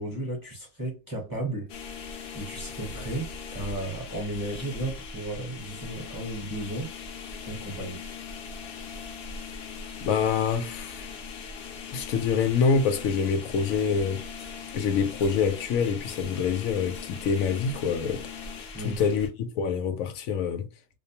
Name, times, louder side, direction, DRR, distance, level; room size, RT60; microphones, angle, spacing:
voice 1, 0.0-1.7 2.3-6.9 7.5-8.0 18.7-19.0, right 1 dB, 20° right, 0.8 m, -34 dB
sound 1, 1.7-19.3, left 5 dB, 60° left, 0.7 m, -40 dB
voice 2, 10.0-11.1 11.9-14.4 14.7-18.3 18.8-20.6, left 6 dB, 90° left, 1.0 m, -26 dB
2.6 x 2.1 x 2.7 m
omnidirectional pair, 1.4 m